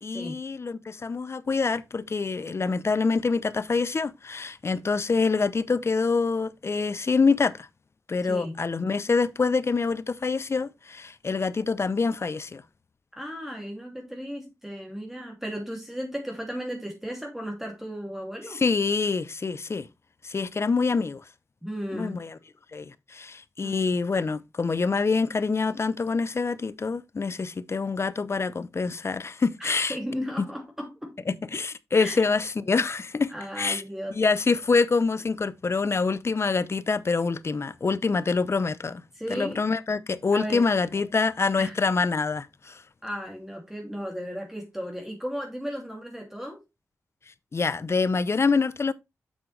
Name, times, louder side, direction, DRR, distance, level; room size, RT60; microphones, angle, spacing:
voice 1, 0.0-7.7 8.1-12.6 18.5-19.9 20.2-21.2 21.9-22.3 22.7-30.0 30.4-30.5 31.3-33.8 34.1-39.0 39.3-42.8 47.5-48.9, left 4 dB, 45° left, 0.6 m, -26 dB
voice 2, 8.2-8.6 13.1-18.6 21.6-22.2 23.6-23.8 29.6-31.2 31.9-32.3 33.3-34.2 39.2-39.6 40.3-40.6 41.6-41.8 43.0-46.6, equal, 5° right, 2.6 m, -35 dB
7.3 x 7.2 x 3.2 m
wide cardioid pair, 75°, 6 cm